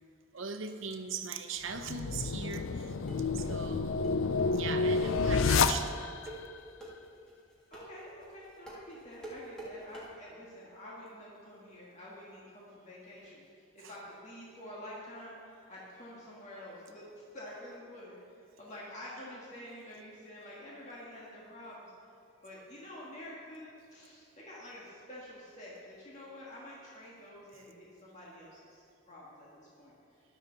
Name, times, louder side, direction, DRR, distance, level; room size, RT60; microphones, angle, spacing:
voice 1, 0.3-3.0 3.3-4.0 4.5-6.1 13.8-13.9, right 5 dB, 70° right, 7 dB, 0.8 m, -40 dB
sound 1, 1.7-6.3, left 4 dB, 75° left, 0.5 m, -29 dB
sound 2, 2.6-10.1, right 2 dB, 5° left, 2.0 m, -47 dB
voice 2, 7.7-21.9 22.4-30.2, left 1 dB, 35° left, -6 dB, 1.8 m, -48 dB
14.0 x 11.0 x 4.0 m, 2.4 s
head